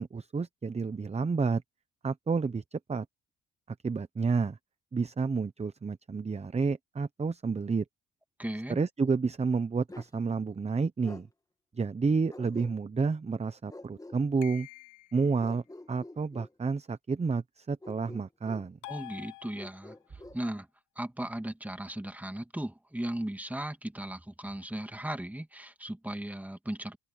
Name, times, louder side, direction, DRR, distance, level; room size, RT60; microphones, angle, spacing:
voice 1, 0.0-1.6 2.0-3.1 3.8-4.6 4.9-7.8 8.7-11.3 11.7-14.7 15.1-18.8, right 4 dB, 20° right, 0.8 m, -30 dB
voice 2, 8.4-8.8 18.9-20.0 20.3-20.7 21.0-27.0, right 1 dB, 5° right, 2.0 m, -37 dB
Bark, 9.9-10.2 11.0-11.3 12.3-13.0 13.7-14.2 15.4-16.5 17.8-18.7 19.5-20.4, left 2 dB, 10° left, 2.1 m, -48 dB
sound 1, 14.4-15.3 18.8-20.1, left 19 dB, 90° left, 1.0 m, -46 dB
cardioid pair, 90°, 30 cm